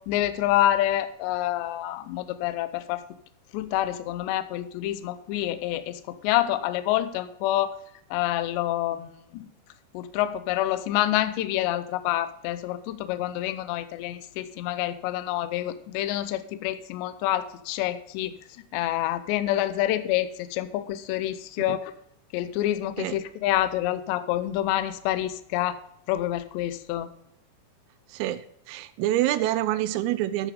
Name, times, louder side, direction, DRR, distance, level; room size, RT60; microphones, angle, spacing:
voice 1, 0.0-3.0 3.5-7.8 8.1-9.5 9.9-18.3 18.7-21.9 22.3-25.8 26.1-27.1, left 13 dB, 80° left, 12 dB, 2.6 m, -27 dB
voice 2, 28.1-30.5, right 14 dB, 90° right, 12 dB, 3.3 m, -27 dB
13.5 x 6.4 x 5.0 m, 0.73 s
omnidirectional pair, 5.8 m